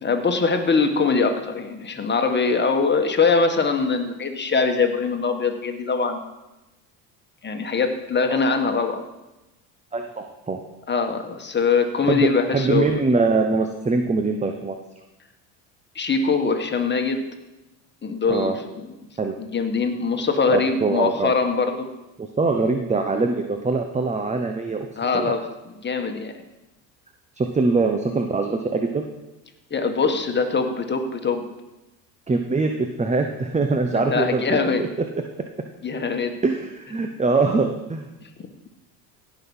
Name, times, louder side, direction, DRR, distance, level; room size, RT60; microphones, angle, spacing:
voice 1, 0.0-6.2 7.4-9.0 10.9-12.9 15.9-17.2 18.0-18.5 19.4-21.9 25.0-25.4 25.8-26.3 29.7-31.4 33.9-34.8 35.8-36.4, left 4 dB, 25° left, 5 dB, 1.7 m, -22 dB
voice 2, 9.9-10.6 12.0-14.8 18.3-18.6 19.2-19.3 20.5-21.3 22.2-24.9 25.1-25.3 27.4-29.0 32.3-34.4 34.8-34.9 36.4-38.1, right 3 dB, 15° right, 5 dB, 1.0 m, -23 dB
16.5 x 6.2 x 5.6 m, 1.0 s
supercardioid pair, 85°, 40 cm